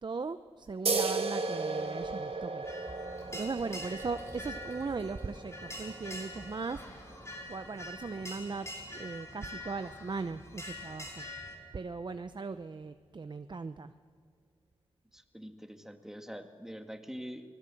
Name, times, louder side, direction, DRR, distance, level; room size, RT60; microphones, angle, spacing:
voice 1, 0.0-2.6 3.3-6.8 7.5-11.2 11.7-13.9, right 4 dB, 45° right, 10 dB, 0.7 m, -38 dB
sound 1, 0.9-8.0, right 4 dB, 65° right, 2.4 m, -36 dB
sound 2, 2.6-11.5, left 1 dB, 25° left, 5.3 m, -45 dB
voice 2, 15.1-17.4, equal, 5° right, 6 dB, 2.0 m, -44 dB
24.5 x 18.5 x 7.8 m, 2.1 s
cardioid pair, 65°, 10 cm